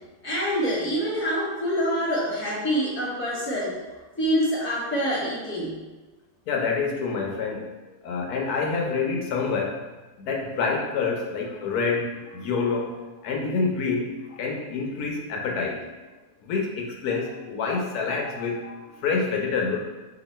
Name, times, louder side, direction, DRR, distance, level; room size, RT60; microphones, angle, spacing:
voice 1, 0.2-3.8 4.2-5.8, equal, 15° left, -6 dB, 0.5 m, -26 dB
voice 2, 6.5-7.6 8.0-9.8 10.2-15.9 16.4-19.8, left 4 dB, 85° left, 0 dB, 1.2 m, -27 dB
2.9 x 2.8 x 4.0 m, 1.2 s
omnidirectional pair, 1.6 m